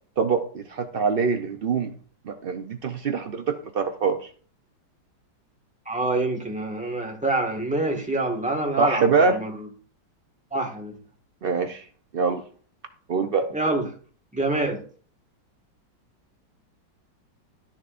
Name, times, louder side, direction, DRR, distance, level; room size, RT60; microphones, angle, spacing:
voice 1, 0.2-1.9 2.2-4.3 8.8-9.4 11.4-11.9 12.1-12.4 13.1-13.5, right 5 dB, 80° right, 6 dB, 0.5 m, -24 dB
voice 2, 5.8-9.6 10.5-10.9 13.5-13.8 14.3-14.8, right 2 dB, 5° right, 1 dB, 1.6 m, -26 dB
12.0 x 10.5 x 2.6 m, 0.43 s
omnidirectional pair, 2.0 m